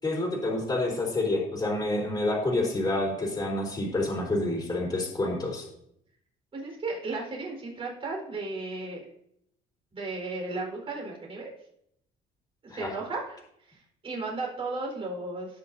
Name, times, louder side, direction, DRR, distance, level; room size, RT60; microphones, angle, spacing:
voice 1, 0.0-5.6 12.7-12.9, left 2 dB, 20° left, -3 dB, 3.8 m, -28 dB
voice 2, 6.5-9.1 9.9-11.5 12.6-15.6, right 3 dB, 35° right, -1 dB, 4.5 m, -35 dB
19.0 x 6.6 x 2.7 m, 0.74 s
cardioid pair, 110°, 17 cm